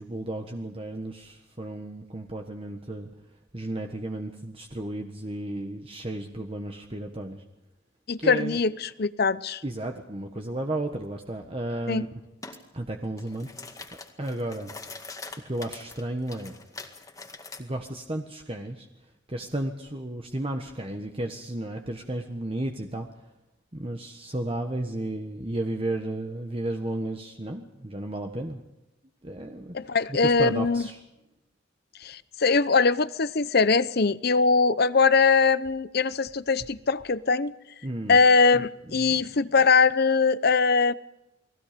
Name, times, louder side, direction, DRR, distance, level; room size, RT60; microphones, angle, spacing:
voice 1, 0.0-3.1 3.5-7.4 8.2-8.6 9.6-12.1 12.7-13.9 14.2-14.7 15.4-16.6 17.6-18.9 19.3-23.1 23.7-28.6 29.2-29.7 30.1-31.0 37.8-38.2 38.5-39.3 39.6-39.7, right 1 dB, 30° right, 4 dB, 1.5 m, -33 dB
voice 2, 8.1-9.6 11.9-12.0 29.7-30.9 32.0-37.5 38.1-40.9, left 4 dB, 55° left, 16 dB, 0.8 m, -22 dB
sound 1, 12.4-12.6 13.0-17.6, left 3 dB, 15° left, 2.0 m, -43 dB
29.5 x 20.5 x 5.2 m, 0.96 s
head